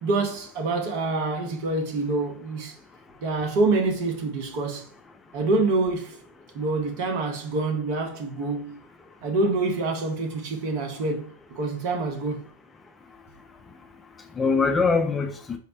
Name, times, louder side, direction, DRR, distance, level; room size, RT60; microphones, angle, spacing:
voice 1, 0.0-2.8 3.2-4.9 5.3-6.2 6.5-8.8 9.2-12.4, right 3 dB, 45° right, 0.7 m, -26 dB
voice 2, 13.1-13.8 14.2-15.6, left 4 dB, 15° left, 0.3 m, -25 dB
4.1 x 2.0 x 2.5 m
figure-of-eight pair, 90°, 0 cm